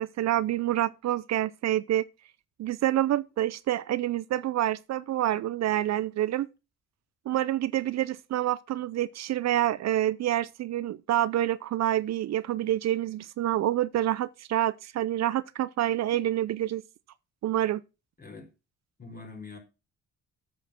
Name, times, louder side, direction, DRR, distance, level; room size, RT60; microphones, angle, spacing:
voice 1, 0.0-2.0 2.6-6.5 7.3-16.8 17.4-17.8, right 13 dB, 60° right, 0.5 m, -27 dB
voice 2, 19.0-19.6, left 3 dB, 30° left, 4.1 m, -43 dB
8.2 x 6.4 x 5.8 m
cardioid pair, 90°, 30 cm